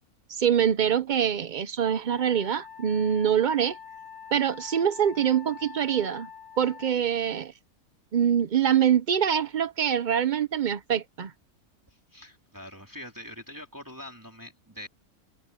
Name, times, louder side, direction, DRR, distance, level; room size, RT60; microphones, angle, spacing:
voice 1, 0.4-3.8 4.3-6.3 6.6-7.5 8.1-11.3, right 9 dB, 70° right, 0.4 m, -24 dB
Wind instrument woodwind instrument, 2.1-7.0, left 7 dB, 50° left, 2.6 m, -45 dB
voice 2, 11.9-14.9, left 1 dB, 10° right, 3.2 m, -44 dB
omnidirectional pair, 1.6 m